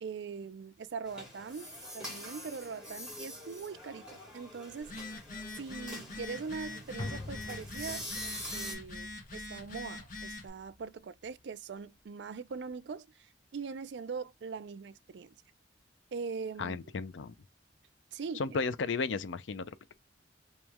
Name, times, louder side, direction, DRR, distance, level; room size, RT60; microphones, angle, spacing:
voice 1, 0.0-5.0 5.6-8.1 8.5-15.4 16.1-16.8 18.1-18.6, right 5 dB, 70° right, 0.4 m, -42 dB
sound 1, 1.1-8.7, equal, 5° right, 2.0 m, -45 dB
Telephone, 4.8-10.5, left 2 dB, 45° left, 1.2 m, -44 dB
sound 2, 7.0-11.4 11.8-11.9, left 2 dB, 25° left, 0.3 m, -46 dB
voice 2, 16.6-17.3 18.4-19.9, left 4 dB, 85° left, 0.5 m, -34 dB
3.1 x 3.0 x 3.5 m
head